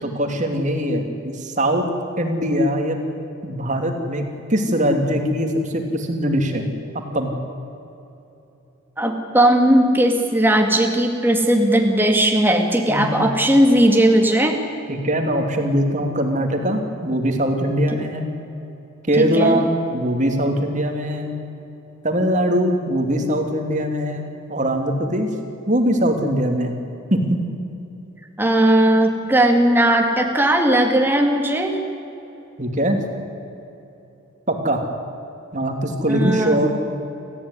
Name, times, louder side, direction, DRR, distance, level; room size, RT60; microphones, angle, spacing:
voice 1, 0.0-1.8 2.2-3.0 3.4-6.7 6.9-7.3 12.9-13.3 14.9-18.3 19.1-21.4 22.0-25.3 25.7-26.7 27.1-27.4 32.6-33.0 34.5-34.8 35.5-36.7, equal, 35° right, 4 dB, 2.8 m, -21 dB
voice 2, 9.0-14.6 19.2-19.6 28.4-31.8 36.1-36.6, right 1 dB, 10° right, 3 dB, 2.3 m, -17 dB
29.5 x 14.5 x 9.8 m, 3.0 s
head